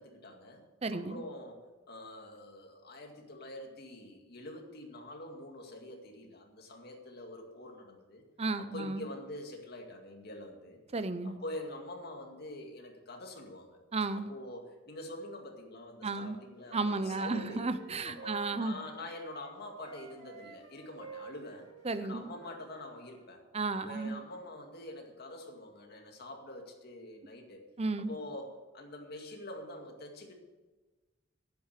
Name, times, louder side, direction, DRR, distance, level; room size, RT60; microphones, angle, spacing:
voice 1, 0.0-0.6 0.9-1.6 1.9-8.2 8.6-10.8 11.2-13.8 14.3-17.7 18.0-21.7 22.0-23.4 23.7-27.6 28.1-30.4, left 1 dB, 55° left, 2 dB, 2.2 m, -45 dB
voice 2, 0.8-1.2 8.4-9.1 10.9-11.4 13.9-14.3 16.0-16.4 16.7-18.8 21.8-22.3 23.5-24.2 27.8-28.1, right 3 dB, 35° right, 12 dB, 0.7 m, -33 dB
Wind instrument woodwind instrument, 16.6-19.5 19.8-23.3, right 4 dB, 65° right, 2.6 m, -51 dB
10.5 x 9.2 x 6.7 m, 1.2 s
head